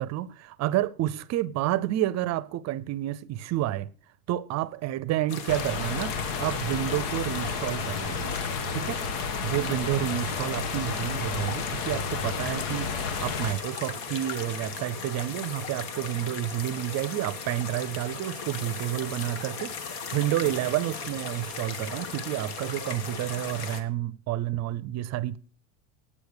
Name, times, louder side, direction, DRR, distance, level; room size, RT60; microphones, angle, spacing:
voice 1, 0.0-3.9 4.3-8.3 8.7-9.0 9.4-25.4, right 14 dB, 35° right, 0.6 m, -30 dB
sound 1, 5.3-23.8, left 5 dB, 65° left, 1.7 m, -37 dB
sound 2, 5.5-13.5, left 5 dB, 85° left, 1.4 m, -32 dB
9.5 x 8.8 x 6.7 m
supercardioid pair, 135°, 46 cm